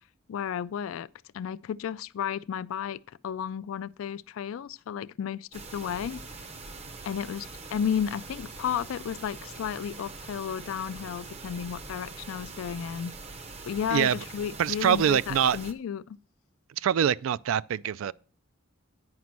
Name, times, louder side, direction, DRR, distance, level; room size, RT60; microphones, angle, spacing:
voice 1, 0.3-1.1 1.3-6.2 7.0-13.1 13.6-16.2, left 8 dB, 70° left, 0.3 m, -33 dB
sound 1, 5.5-15.7, right 3 dB, 30° right, 0.7 m, -43 dB
voice 2, 14.6-15.6 16.8-18.1, right 8 dB, 70° right, 0.3 m, -24 dB
9.5 x 5.1 x 6.0 m
head